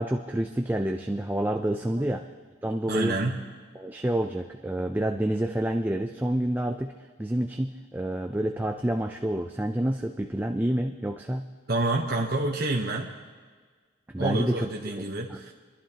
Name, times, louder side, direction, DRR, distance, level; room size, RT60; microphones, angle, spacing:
voice 1, 0.0-2.3 2.6-3.2 3.7-6.9 7.2-11.5 14.1-14.7 15.3-15.4, right 1 dB, 10° right, 3 dB, 0.4 m, -28 dB
voice 2, 2.9-3.4 11.7-13.1 14.2-15.5, right 2 dB, 50° right, -1 dB, 1.0 m, -28 dB
25.5 x 11.5 x 2.9 m, 1.5 s
head